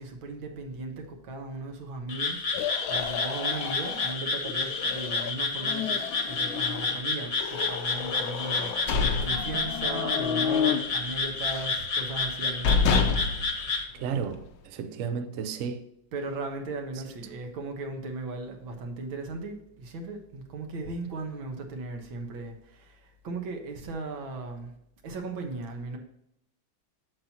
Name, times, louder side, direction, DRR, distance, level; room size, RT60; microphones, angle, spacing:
voice 1, 0.0-8.7 9.2-13.2 16.1-24.7 25.0-26.0, right 3 dB, 80° right, 2.1 m, -37 dB
Frog, 2.1-13.8, left 3 dB, 45° left, 1.2 m, -30 dB
sound 1, 2.5-4.2 4.5-5.3 5.6-7.0 7.3-8.9 9.3-10.8, left 9 dB, 90° left, 1.4 m, -33 dB
sound 2, 8.5-10.1 10.4-10.7 11.0-11.8 12.3-12.4 12.6-14.5, left 4 dB, 70° left, 1.4 m, -27 dB
voice 2, 14.0-14.4 14.7-15.8, right 6 dB, 65° right, 0.8 m, -32 dB
7.6 x 7.2 x 2.8 m
omnidirectional pair, 2.1 m